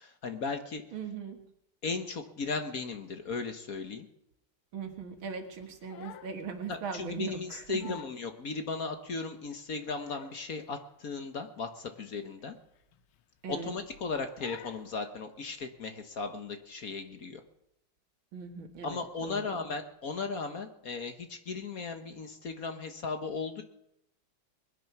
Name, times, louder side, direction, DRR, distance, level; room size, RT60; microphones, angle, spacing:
voice 1, 0.0-0.8 1.8-4.1 6.7-12.5 13.5-17.4 18.8-23.6, left 4 dB, 50° left, 7 dB, 1.5 m, -36 dB
voice 2, 0.9-1.5 4.7-7.9 13.4-13.7 18.3-19.6, right 6 dB, 75° right, 6 dB, 2.5 m, -39 dB
Crying sobbing, 5.6-6.4 6.8-7.0 7.5-7.6 7.8-8.2 8.8-8.9 9.6-10.5 10.8-11.0 11.4-11.5 11.9-12.0 12.8-13.4 13.7-14.0 14.4-14.9, left 11 dB, 85° left, 1.6 m, -49 dB
21.5 x 10.0 x 6.0 m, 0.80 s
omnidirectional pair, 2.2 m